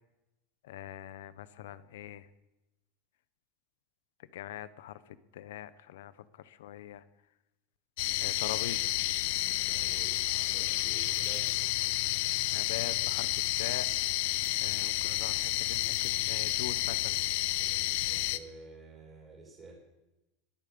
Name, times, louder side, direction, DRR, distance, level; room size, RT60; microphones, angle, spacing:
voice 1, 0.6-2.3 4.3-7.0 8.2-9.0 12.5-13.9 14.6-17.2, left 12 dB, 90° left, 15 dB, 1.0 m, -42 dB
sound 1, 8.0-18.4, left 17 dB, 55° left, 0.7 m, -30 dB
voice 2, 9.7-11.5 17.5-19.7, right 3 dB, 15° right, 0 dB, 4.1 m, -51 dB
21.5 x 9.0 x 6.9 m, 0.97 s
supercardioid pair, 180°, 0 cm